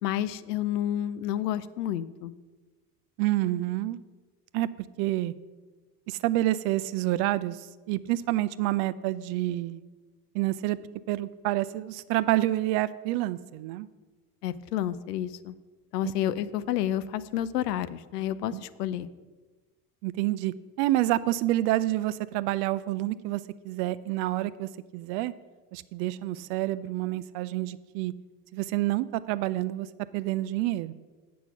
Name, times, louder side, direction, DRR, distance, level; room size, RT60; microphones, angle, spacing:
voice 1, 0.0-2.3 14.4-15.6 15.9-19.1, left 11 dB, 80° left, 15 dB, 0.6 m, -30 dB
voice 2, 3.2-4.0 4.5-4.7 5.0-5.3 6.1-7.6 7.9-9.8 10.3-10.8 11.1-13.9 16.0-16.1 18.5-18.6 20.0-25.3 25.7-28.1 28.5-29.9 30.1-30.9, right 16 dB, 55° right, 16 dB, 0.5 m, -28 dB
8.1 x 6.2 x 5.8 m, 1.3 s
hypercardioid pair, 70°, 47 cm